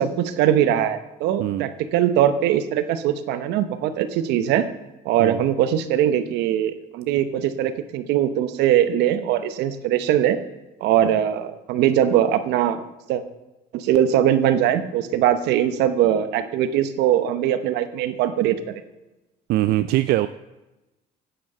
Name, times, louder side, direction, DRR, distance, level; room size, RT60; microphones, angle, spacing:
voice 1, 0.0-4.7 5.0-10.4 10.8-12.8 13.1-13.2 13.7-18.6, right 10 dB, 90° right, 11 dB, 0.9 m, -21 dB
voice 2, 19.5-20.3, right 15 dB, 70° right, 12 dB, 0.4 m, -21 dB
9.3 x 8.7 x 5.4 m, 1.0 s
cardioid pair, 110°, 17 cm